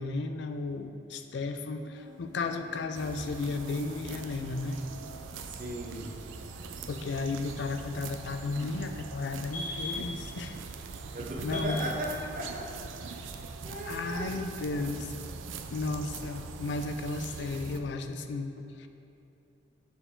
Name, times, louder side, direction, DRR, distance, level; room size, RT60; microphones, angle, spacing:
voice 1, 0.0-4.8 6.9-10.6 11.4-11.8 13.9-15.2 15.7-18.9, left 3 dB, 65° left, 7 dB, 0.3 m, -34 dB
sound 1, 1.8-9.3, left 6 dB, 20° left, 0.6 m, -57 dB
sound 2, 2.0-11.6, left 2 dB, 45° left, 1.1 m, -47 dB
sound 3, 2.9-17.8, right 4 dB, 85° right, 0.4 m, -42 dB
voice 2, 5.4-6.2 11.1-13.3 13.6-14.3 14.7-14.9, right 1 dB, 45° right, -1 dB, 0.8 m, -37 dB
6.7 x 4.5 x 3.7 m, 2.8 s
head